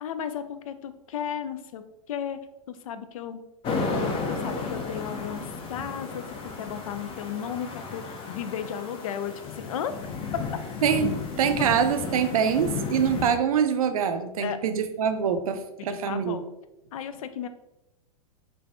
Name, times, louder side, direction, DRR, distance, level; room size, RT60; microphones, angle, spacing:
voice 1, 0.0-2.4 2.7-3.4 4.3-9.9 14.4-14.6 15.8-16.4 16.9-17.5, left 8 dB, 70° left, 10 dB, 0.4 m, -34 dB
sound 1, 3.6-13.3, left 4 dB, 30° left, 0.6 m, -33 dB
voice 2, 10.8-16.4, right 7 dB, 75° right, 9 dB, 0.4 m, -25 dB
3.4 x 3.3 x 2.5 m, 0.94 s
hypercardioid pair, 110°, 18 cm